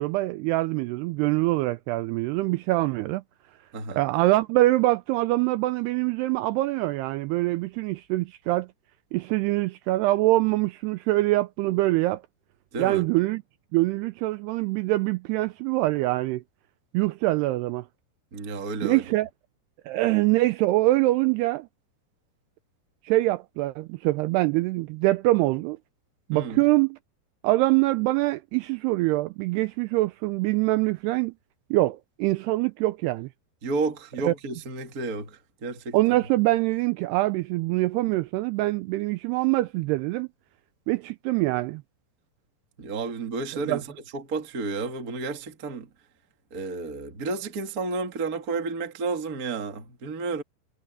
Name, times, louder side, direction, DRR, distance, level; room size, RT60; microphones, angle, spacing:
voice 1, 0.0-3.2 4.0-8.7 9.1-12.2 12.8-13.4 13.7-16.4 16.9-17.9 18.8-19.3 19.9-21.7 23.0-25.8 26.3-27.0 27.4-31.3 31.7-33.3 34.3-34.4 35.9-40.3 40.9-41.8 43.7-43.8, right 18 dB, 85° right, 2.4 m, -24 dB
voice 2, 12.7-13.0 18.3-19.0 26.3-26.7 33.6-36.0 42.8-45.9 46.5-50.4, right 3 dB, 55° right, 1.0 m, -31 dB
omnidirectional pair, 5.2 m